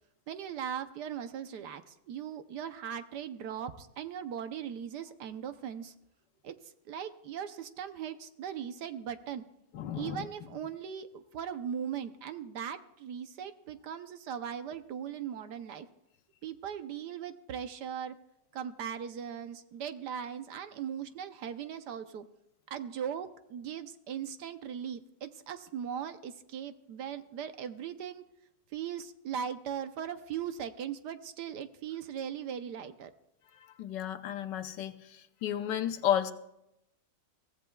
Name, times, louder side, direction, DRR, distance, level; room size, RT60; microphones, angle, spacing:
voice 1, 0.3-5.9 6.4-9.4 9.9-15.9 16.4-18.1 18.5-22.3 22.7-28.2 28.7-33.1, right 8 dB, 70° right, 9 dB, 1.3 m, -39 dB
voice 2, 9.7-10.3 33.8-34.9 35.4-36.3, left 10 dB, 75° left, 9 dB, 1.4 m, -32 dB
23.0 x 16.0 x 2.3 m, 0.84 s
omnidirectional pair, 2.0 m